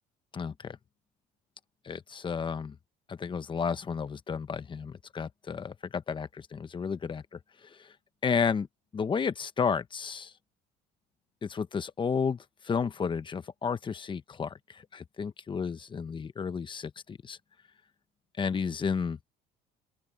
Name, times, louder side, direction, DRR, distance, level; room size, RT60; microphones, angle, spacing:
voice 1, 0.3-0.8 1.8-2.8 3.1-7.9 8.2-8.7 8.9-10.3 11.4-17.4 18.4-19.2, left 6 dB, 30° left, 1.2 m, -32 dB
open air
cardioid pair, 105°, 17 cm